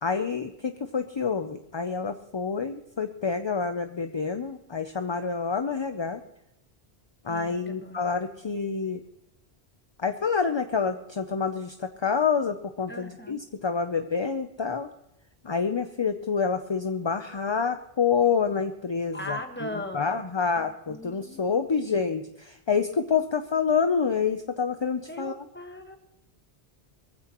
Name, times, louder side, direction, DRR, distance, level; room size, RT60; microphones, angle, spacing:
voice 1, 0.0-6.2 7.2-9.0 10.0-14.9 15.4-19.7 19.9-25.4, left 5 dB, 35° left, 7 dB, 0.5 m, -27 dB
voice 2, 7.3-8.0 12.9-13.5 19.1-20.2 20.5-21.4 21.8-22.0 25.1-26.0, left 1 dB, 10° left, 5 dB, 1.3 m, -39 dB
22.0 x 15.0 x 3.0 m, 0.81 s
omnidirectional pair, 1.1 m